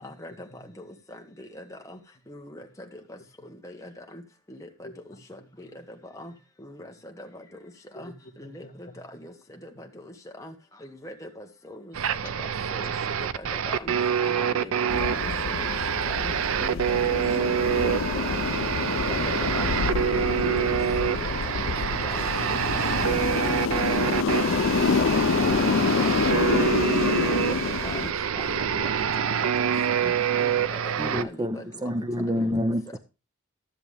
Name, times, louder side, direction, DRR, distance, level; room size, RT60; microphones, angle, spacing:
voice 1, 0.0-0.3 0.6-2.0 2.3-2.7 2.9-3.2 3.6-4.2 4.5-4.9 5.3-5.7 6.1-6.3 6.6-7.4 7.9-8.1 8.4-9.3 9.6-10.5 10.8-11.9 12.4-12.9 13.3-13.9 14.2-15.7 16.1-16.3 16.6-17.9 18.3-18.4 18.7-21.3 21.6-22.6 23.0-23.2 23.4-24.0 24.4-24.6 25.0-25.2 25.5-28.1 28.4-28.9 29.3-29.5 30.0-30.1 30.4-31.7 32.3-32.5, left 1 dB, 15° left, 1.3 m, -42 dB
voice 2, 4.8-6.0 6.8-7.0 7.9-9.2 9.5-9.8 14.5-14.7 28.6-29.3, equal, 40° left, 1.3 m, -49 dB
sound 1, 11.9-31.2, right 8 dB, 75° right, 0.5 m, -26 dB
sound 2, 14.9-28.1, left 5 dB, 65° left, 0.4 m, -27 dB
voice 3, 31.0-33.0, equal, 20° right, 0.7 m, -28 dB
13.0 x 7.0 x 3.4 m
head